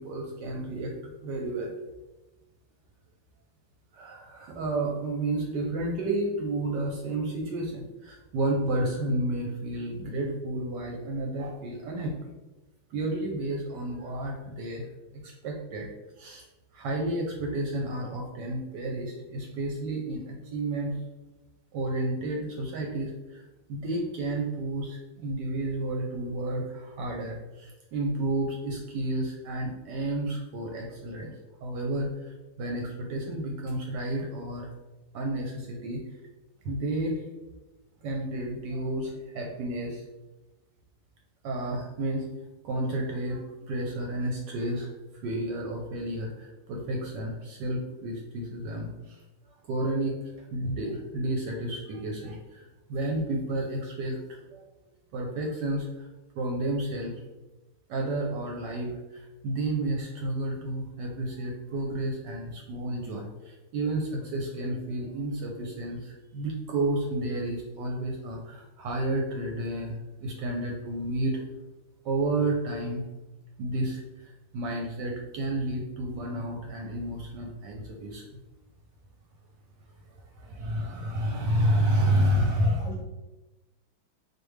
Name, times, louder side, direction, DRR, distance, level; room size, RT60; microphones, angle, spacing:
voice 1, 0.0-1.7 3.9-12.3 12.9-14.8 15.2-15.9 16.2-16.5 16.7-21.0 21.7-23.4 23.7-31.3 31.6-34.7 35.1-36.0 36.6-37.2 38.0-40.0 41.4-42.3 42.6-44.9 45.2-49.2 49.6-54.2 54.5-54.6 55.1-56.1 56.4-57.2 57.9-71.4 72.0-73.0 73.6-78.3 80.3-82.8, right 1 dB, 70° right, 1 dB, 1.1 m, -31 dB
voice 2, 82.6-83.0, left 4 dB, 75° left, 1 dB, 1.1 m, -41 dB
4.2 x 2.6 x 3.1 m, 1.0 s
omnidirectional pair, 2.2 m